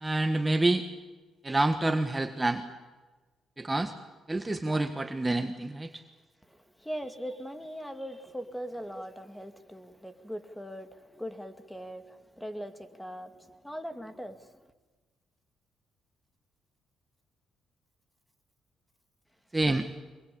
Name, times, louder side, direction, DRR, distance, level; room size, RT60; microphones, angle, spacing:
voice 1, 0.0-0.8 1.4-2.6 3.6-3.9 4.3-6.0 19.5-19.9, right 2 dB, 15° right, 7 dB, 1.6 m, -27 dB
voice 2, 6.5-14.6, equal, 5° left, 8 dB, 2.3 m, -40 dB
24.0 x 22.5 x 8.7 m, 1.3 s
cardioid pair, 90°, 0 cm